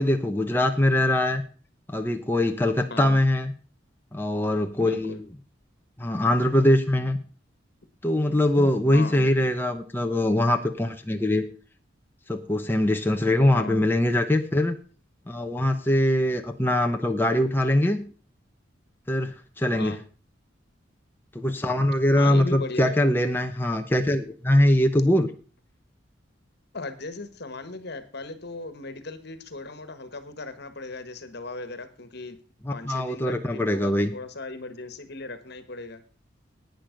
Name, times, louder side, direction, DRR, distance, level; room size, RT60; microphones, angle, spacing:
voice 1, 0.0-1.4 1.9-3.5 4.1-5.1 6.0-7.2 8.0-11.4 12.3-14.8 15.3-18.0 19.1-20.0 21.3-25.3 32.6-34.1, left 1 dB, 10° left, 4 dB, 0.8 m, -22 dB
voice 2, 2.9-3.2 4.8-5.2 8.6-9.3 13.5-13.8 19.7-20.0 22.2-23.2 26.7-32.4 32.7-36.0, left 2 dB, 60° left, 11 dB, 1.6 m, -37 dB
11.0 x 9.3 x 5.2 m, 0.38 s
head